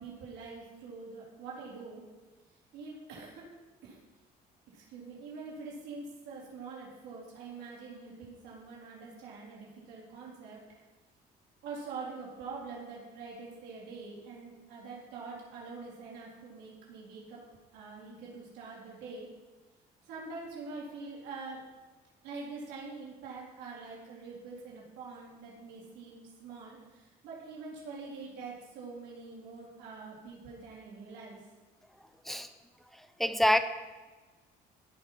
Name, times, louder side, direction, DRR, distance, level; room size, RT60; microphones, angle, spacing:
voice 1, 0.0-2.0 2.7-3.4 3.8-4.0 4.7-10.6 11.6-17.4 17.7-19.3 20.0-21.6 22.2-31.4, right 4 dB, 85° right, -5 dB, 3.9 m, -45 dB
voice 2, 33.2-33.6, left 1 dB, ahead, 9 dB, 0.9 m, -25 dB
16.0 x 5.6 x 5.9 m, 1.2 s
cardioid pair, 110°, 17 cm